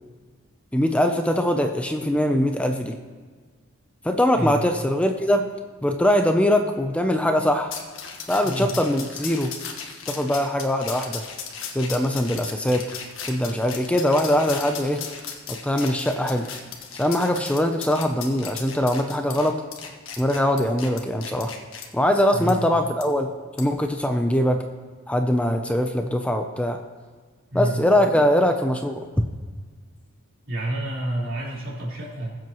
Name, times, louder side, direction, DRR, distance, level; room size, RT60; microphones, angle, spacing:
voice 1, 0.7-3.0 4.0-5.5 5.8-7.8 8.3-9.5 10.1-11.2 11.7-12.9 13.3-15.0 15.5-16.5 16.9-19.6 20.2-21.5 21.9-23.3 23.6-24.6 25.1-26.8 27.5-29.0, left 1 dB, 5° left, 5 dB, 0.5 m, -22 dB
sound 1, 7.7-21.9 22.5-22.6 23.0-23.1 23.6-23.8, left 6 dB, 75° left, 1.4 m, -37 dB
voice 2, 30.5-32.4, right 1 dB, 70° right, -5 dB, 3.8 m, -28 dB
21.0 x 7.6 x 3.0 m, 1.5 s
head